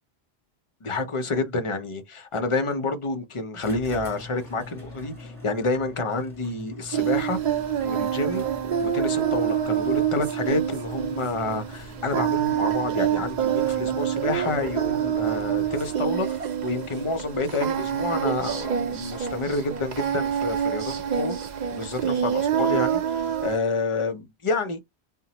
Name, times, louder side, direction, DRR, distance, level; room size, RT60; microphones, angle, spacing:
voice 1, 0.8-7.4 7.8-8.4 8.8-23.0 23.4-24.8, left 3 dB, 40° left, 0.5 m, -29 dB
sound 1, 3.6-16.4, left 2 dB, ahead, 1.5 m, -43 dB
Singing, 6.9-23.6, right 9 dB, 55° right, 0.5 m, -26 dB
2.9 x 2.1 x 2.8 m
omnidirectional pair, 1.1 m